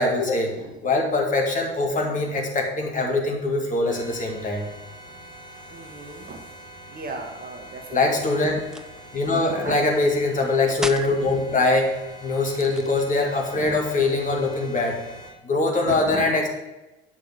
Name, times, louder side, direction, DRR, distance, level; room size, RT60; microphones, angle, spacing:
voice 1, 0.0-0.5 0.8-4.7 7.9-8.6 9.1-11.9 12.2-15.0 15.4-16.5, left 2 dB, 25° left, 0 dB, 2.0 m, -23 dB
sound 1, 3.9-15.3, right 1 dB, 75° left, 3.4 m, -44 dB
voice 2, 5.7-6.4 6.9-8.0 9.4-9.8 13.5-13.8 15.8-16.4, right 3 dB, 25° right, 3 dB, 1.2 m, -36 dB
sound 2, 8.6-9.0 10.7-11.2 12.4-13.4, right 1 dB, ahead, 0.4 m, -35 dB
8.7 x 5.9 x 5.0 m, 1.0 s
figure-of-eight pair, 65°, 33 cm